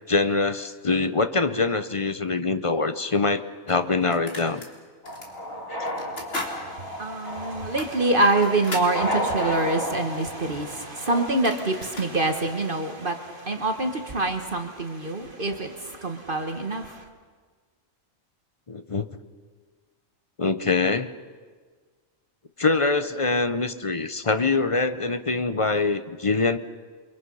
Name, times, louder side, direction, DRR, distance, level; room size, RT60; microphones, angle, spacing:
voice 1, 0.1-4.6 18.7-19.1 20.4-21.1 22.6-26.6, left 3 dB, 30° left, 10 dB, 0.7 m, -24 dB
sound 1, 2.9-3.0 3.7-4.7 5.0-5.3 5.9-6.6 6.9-7.0 7.6-9.0 10.9-11.0 11.2-12.1, left 1 dB, 50° left, 3.3 m, -36 dB
sound 2, 5.0-11.3, equal, 85° left, 4.4 m, -32 dB
voice 2, 6.7-17.0, right 2 dB, 40° right, 5 dB, 1.6 m, -26 dB
29.0 x 24.0 x 5.6 m, 1.5 s
omnidirectional pair, 1.4 m